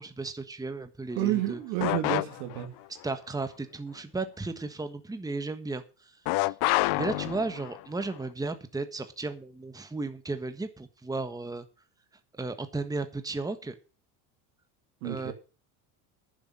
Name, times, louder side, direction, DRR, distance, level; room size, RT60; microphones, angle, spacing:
voice 1, 0.0-1.6 3.0-6.1 6.4-6.5 6.9-11.6 12.3-13.7 15.0-15.3, right 3 dB, 10° right, 1.4 m, -34 dB
voice 2, 1.1-2.7 15.0-15.3, right 13 dB, 80° right, 2.7 m, -30 dB
sound 1, 1.8-2.7 6.3-7.8, left 22 dB, 60° left, 0.5 m, -28 dB
9.8 x 7.7 x 7.6 m
supercardioid pair, 100°, 45 cm